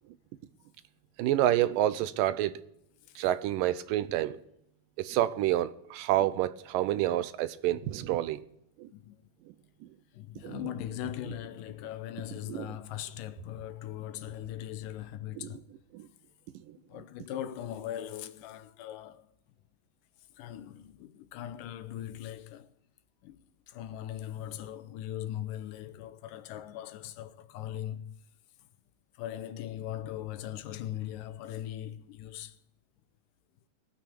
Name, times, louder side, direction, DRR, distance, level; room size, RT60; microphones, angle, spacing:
voice 1, 1.2-2.5 3.2-4.4 5.0-8.4 8.8-8.9 10.4-10.6 12.5-12.7 15.4-15.6 15.9-16.1 16.7-16.8, right 13 dB, 80° right, 2.3 m, -28 dB
voice 2, 10.1-15.6 16.9-19.3 20.4-22.7 23.2-28.1 29.2-32.6, left 11 dB, 80° left, 2.3 m, -40 dB
18.5 x 6.3 x 8.4 m
omnidirectional pair, 4.0 m